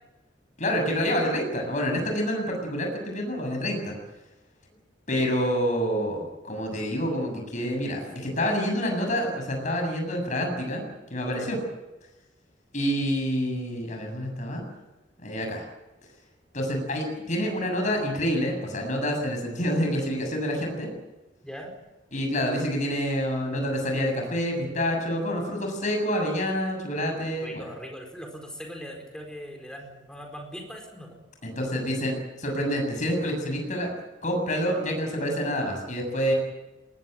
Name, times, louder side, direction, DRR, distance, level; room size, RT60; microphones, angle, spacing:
voice 1, 0.6-3.9 5.1-10.8 11.1-11.6 12.7-14.6 15.2-15.6 16.5-20.9 22.1-27.7 31.4-33.9 34.2-36.3, equal, 40° left, 2 dB, 7.3 m, -27 dB
voice 2, 27.4-31.2, equal, 5° left, 2 dB, 4.6 m, -40 dB
21.0 x 20.0 x 9.1 m, 1.1 s
head